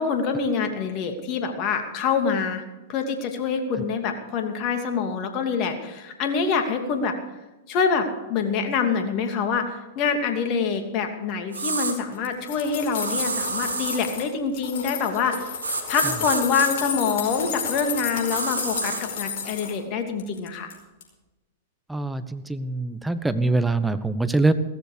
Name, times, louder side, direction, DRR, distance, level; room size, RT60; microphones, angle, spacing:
voice 1, 0.0-2.6 2.9-7.2 7.7-15.5 15.9-20.7, left 5 dB, 40° left, 5 dB, 2.7 m, -25 dB
sound 1, 11.5-12.0 13.0-14.0 15.6-16.7 18.3-19.0, right 4 dB, 90° right, 2.0 m, -28 dB
sound 2, 12.1-14.3 14.6-19.8 20.2-20.8 21.0-21.1, left 6 dB, 60° left, 5.0 m, -32 dB
voice 2, 21.9-24.5, right 2 dB, 5° right, 11 dB, 1.1 m, -23 dB
16.5 x 14.0 x 5.1 m, 1.1 s
hypercardioid pair, 105°, 0 cm